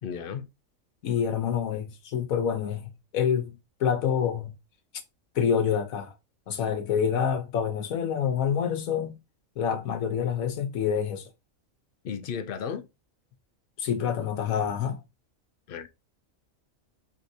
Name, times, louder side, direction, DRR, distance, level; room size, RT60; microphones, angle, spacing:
voice 1, 0.0-0.5 12.0-12.8 15.7-15.9, left 7 dB, 70° left, 0.5 m, -34 dB
voice 2, 1.0-4.5 5.3-6.1 6.5-9.2 9.6-11.3 13.8-15.0, left 8 dB, 85° left, 1.2 m, -27 dB
4.5 x 3.3 x 2.6 m
omnidirectional pair, 1.4 m